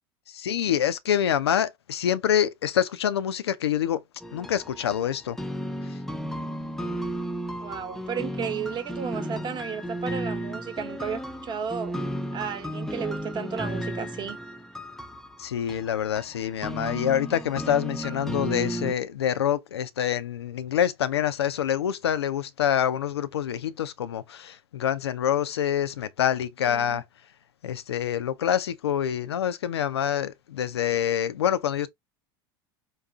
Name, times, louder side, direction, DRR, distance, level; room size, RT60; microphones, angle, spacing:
voice 1, 0.3-4.0 4.3-5.4 5.8-6.0 15.4-27.0 27.6-31.9, left 9 dB, 85° left, 0.4 m, -26 dB
sound 1, 4.2-18.9, equal, 5° left, 0.4 m, -34 dB
voice 2, 7.6-12.0 12.3-14.4 26.7-27.0, right 7 dB, 35° right, 0.9 m, -33 dB
3.9 x 2.3 x 2.3 m
hypercardioid pair, 85°, 13 cm